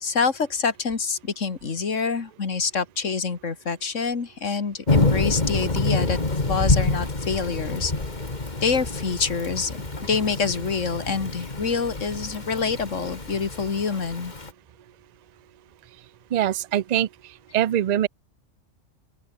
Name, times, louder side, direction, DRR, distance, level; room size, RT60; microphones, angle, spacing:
voice 1, 0.0-6.2 6.5-7.9 8.6-9.8 10.1-14.3, left 5 dB, 80° left, 2.4 m, -26 dB
Thunder / Rain, 4.9-14.5, left 2 dB, 35° left, 2.6 m, -27 dB
voice 2, 16.3-17.1 17.5-18.1, right 11 dB, 55° right, 0.5 m, -22 dB
open air
omnidirectional pair, 1.3 m